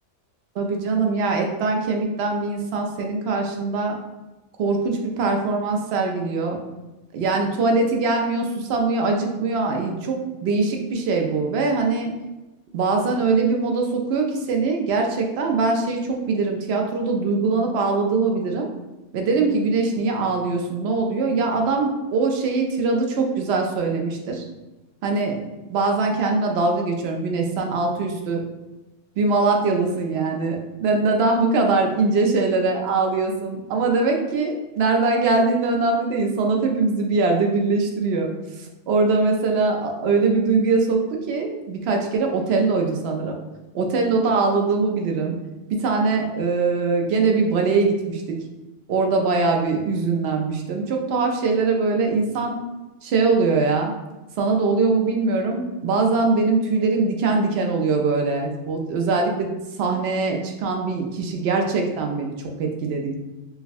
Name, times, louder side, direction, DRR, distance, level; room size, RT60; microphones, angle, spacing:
voice 1, 0.6-4.0 4.6-6.6 7.1-12.1 12.7-18.7 19.1-24.4 25.0-25.4 25.7-28.4 29.2-41.0 41.3-43.3 43.7-45.4 45.7-48.4 48.9-52.6 53.0-53.9 54.4-59.5 59.8-63.1, right 3 dB, 65° right, 2 dB, 0.8 m, -22 dB
4.6 x 2.1 x 2.5 m, 1.1 s
omnidirectional pair, 1.3 m